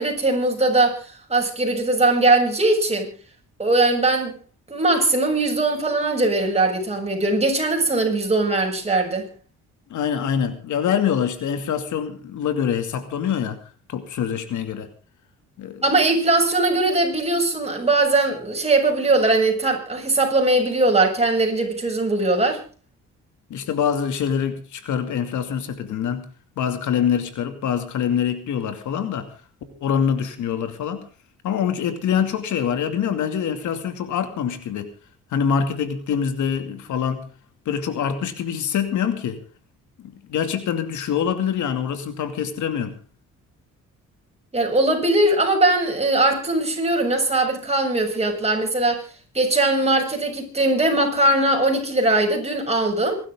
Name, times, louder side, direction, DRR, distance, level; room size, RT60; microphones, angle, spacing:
voice 1, 0.0-3.1 3.6-4.3 4.7-9.3 15.8-22.6 44.5-49.0 49.3-53.2, right 2 dB, 20° right, 7.3 m, -20 dB
voice 2, 9.9-13.6 13.9-14.9 15.6-15.8 23.5-26.2 26.6-29.3 29.8-31.1 31.4-34.9 35.3-37.2 37.7-39.4 40.0-42.9, left 8 dB, 75° left, 2.5 m, -25 dB
26.0 x 12.5 x 3.7 m
cardioid pair, 90°, 30 cm